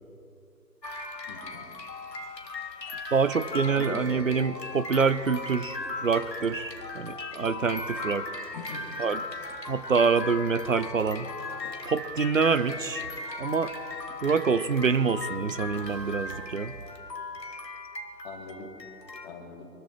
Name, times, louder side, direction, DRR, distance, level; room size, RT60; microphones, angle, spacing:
sound 1, 0.8-19.3, left 3 dB, 80° left, 2.0 m, -38 dB
voice 1, 1.3-1.6 3.7-4.3 8.5-8.9 18.2-18.7 19.2-19.7, left 3 dB, 25° left, 0 dB, 3.0 m, -40 dB
voice 2, 3.1-8.3 9.0-9.2 9.7-11.3 11.9-13.0 13.4-13.7 14.2-16.7, right 5 dB, 50° right, 14 dB, 0.8 m, -26 dB
27.0 x 14.0 x 3.3 m, 2.6 s
figure-of-eight pair, 150°, 49 cm